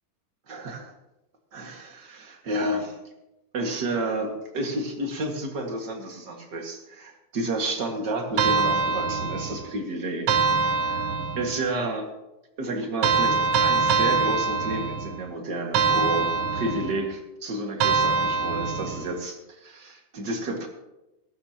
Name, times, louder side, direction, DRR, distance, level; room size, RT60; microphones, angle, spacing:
voice 1, 0.5-0.9 1.5-3.0 3.5-10.3 10.6-12.1 12.6-20.7, right 2 dB, 40° right, 2 dB, 2.1 m, -31 dB
sound 1, 8.4-9.7 10.3-11.6 13.0-15.2 15.7-17.0 17.8-19.1, right 4 dB, 75° right, 1.4 m, -24 dB
21.5 x 12.5 x 2.9 m, 0.95 s
omnidirectional pair, 3.7 m